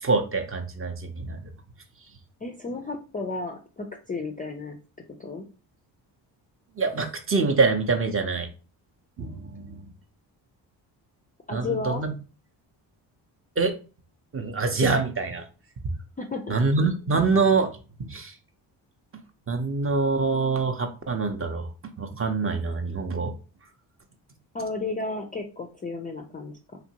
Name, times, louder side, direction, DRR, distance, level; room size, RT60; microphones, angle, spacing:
voice 1, 0.0-1.4 6.8-8.5 9.2-9.8 11.5-12.1 13.6-13.7 14.3-15.4 16.5-17.7 18.0-18.3 19.5-21.7 22.0-23.3, right 4 dB, 30° right, 5 dB, 0.5 m, -25 dB
voice 2, 2.4-4.8 5.2-5.4 11.5-12.0 16.2-16.6 24.5-26.8, left 3 dB, 20° left, 3 dB, 0.3 m, -33 dB
2.9 x 2.5 x 2.8 m, 0.35 s
supercardioid pair, 70°, 46 cm